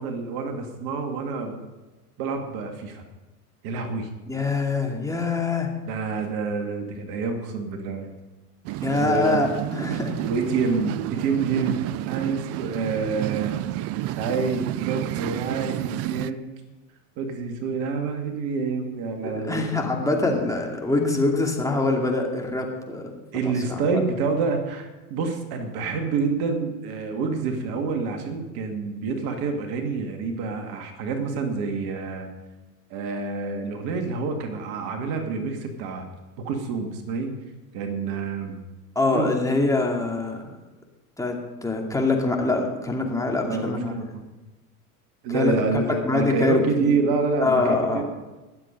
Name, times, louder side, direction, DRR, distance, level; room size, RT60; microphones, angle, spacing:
voice 1, 0.0-1.6 2.2-3.0 3.6-4.1 5.9-8.2 9.0-9.4 10.2-13.6 14.1-16.5 17.2-19.9 23.3-32.3 32.9-36.0 36.4-37.3 37.7-38.6 39.1-39.4 43.5-44.2 45.2-48.0, right 4 dB, 50° right, 4 dB, 2.4 m, -27 dB
voice 2, 4.3-5.7 8.8-10.2 19.2-23.5 39.0-40.6 41.2-43.9 45.3-45.5 46.0-47.0 47.4-48.0, left 3 dB, 5° left, 0 dB, 2.5 m, -24 dB
sound 1, 8.6-16.3, right 15 dB, 35° right, 0.5 m, -30 dB
21.5 x 7.7 x 5.3 m, 1.1 s
hypercardioid pair, 85°, 46 cm